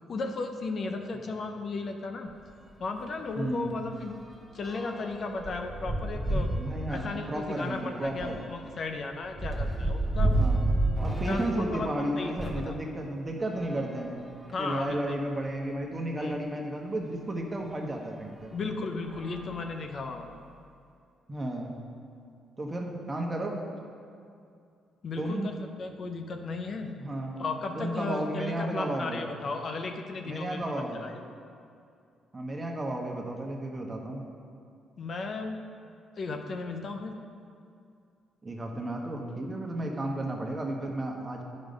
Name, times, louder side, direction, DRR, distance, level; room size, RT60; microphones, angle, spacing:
voice 1, 0.1-2.3 2.8-4.2 4.5-6.6 6.9-10.4 11.3-12.8 14.5-15.2 16.2-16.4 18.5-20.3 25.0-27.0 27.4-31.2 35.0-35.6 36.2-37.2, left 3 dB, 50° left, 5 dB, 0.6 m, -35 dB
sound 1, 2.3-2.5 2.8-3.0 3.3-12.7 13.5-14.8 15.5-15.6 15.8-15.9 17.6-17.7 18.4-18.7 19.0-20.3, right 1 dB, 5° right, 1.4 m, -32 dB
voice 2, 3.4-3.7 6.5-8.4 10.3-10.6 11.0-14.2 14.6-18.5 21.3-21.8 22.6-23.6 25.2-25.5 26.9-27.4 27.7-29.2 30.2-31.0 32.3-34.2 38.4-41.4, right 1 dB, 25° right, 1 dB, 1.2 m, -33 dB
9.4 x 5.4 x 5.2 m, 2.4 s
cardioid pair, 90°, 0 cm